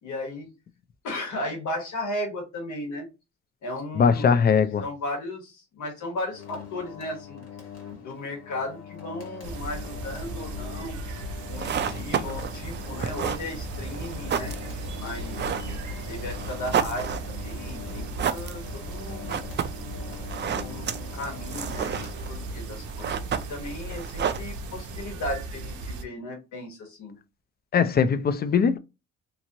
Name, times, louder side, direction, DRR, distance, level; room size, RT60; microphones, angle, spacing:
voice 1, 0.0-0.5 1.0-3.1 3.6-4.4 4.8-7.4 7.9-11.0 11.5-14.5 15.0-15.6 16.1-19.5 20.5-27.1, left 1 dB, 75° left, 1.3 m, -35 dB
voice 2, 4.0-4.8 27.7-28.8, left 6 dB, 35° left, 0.4 m, -20 dB
sound 1, 6.3-22.8, left 8 dB, 60° left, 1.3 m, -43 dB
sound 2, 9.4-26.0, right 2 dB, 75° right, 0.8 m, -37 dB
sound 3, 11.4-25.0, right 8 dB, 35° right, 0.4 m, -33 dB
2.9 x 2.5 x 2.7 m
cardioid pair, 90°, 30 cm